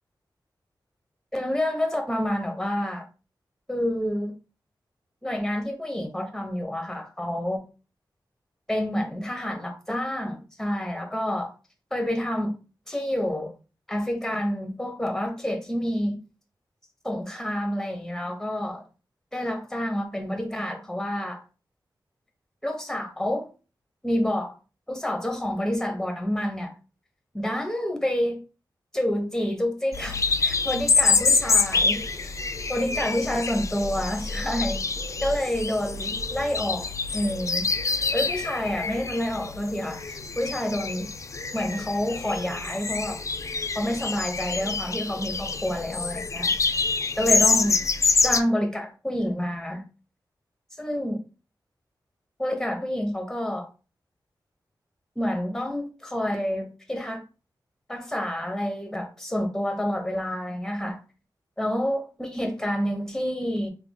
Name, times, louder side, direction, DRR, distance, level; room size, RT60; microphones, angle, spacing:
voice 1, 1.3-3.1 3.7-4.3 5.2-7.6 8.7-11.5 11.9-12.5 12.9-13.5 13.9-16.2 17.0-18.9 19.3-21.4 22.6-23.5 24.0-24.6 24.9-26.7 27.3-28.4 28.9-32.4 32.7-34.8 35.2-37.7 38.1-41.1 41.5-43.2 43.7-46.5 47.2-47.8 48.2-49.8 50.8-51.2 52.4-53.7 55.2-57.2 57.9-61.0 61.6-63.7, left 1 dB, 5° left, 0.8 m, -28 dB
sound 1, 29.9-48.4, left 4 dB, 40° left, 0.3 m, -26 dB
3.4 x 2.2 x 3.5 m
wide cardioid pair, 85°, 8 cm